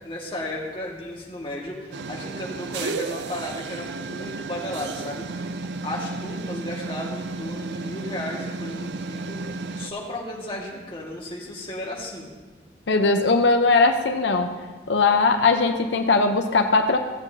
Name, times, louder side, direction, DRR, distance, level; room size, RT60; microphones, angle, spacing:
voice 1, 0.0-5.5 5.8-12.3, left 1 dB, 30° left, -3 dB, 1.8 m, -34 dB
sound 1, 1.9-9.9, right 3 dB, 75° right, 0.5 m, -33 dB
voice 2, 12.9-14.5 14.9-17.0, left 3 dB, 80° left, 5 dB, 0.7 m, -19 dB
16.0 x 8.1 x 2.8 m, 1.3 s
head